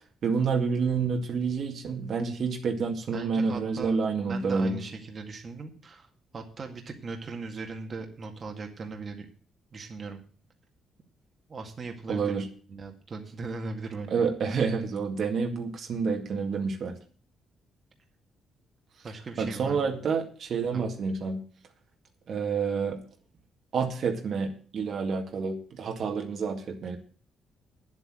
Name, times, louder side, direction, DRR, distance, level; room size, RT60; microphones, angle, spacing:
voice 1, 0.2-4.8 12.1-12.5 14.1-17.0 19.4-21.4 22.3-23.0 23.7-27.0, right 5 dB, 60° right, 3 dB, 2.0 m, -28 dB
voice 2, 3.1-3.9 4.3-9.3 9.7-10.2 11.5-12.4 12.7-14.1 19.0-20.1 20.7-21.0, right 4 dB, 40° right, 3 dB, 2.1 m, -39 dB
9.8 x 8.1 x 7.7 m, 0.41 s
cardioid pair, 90°, 0 cm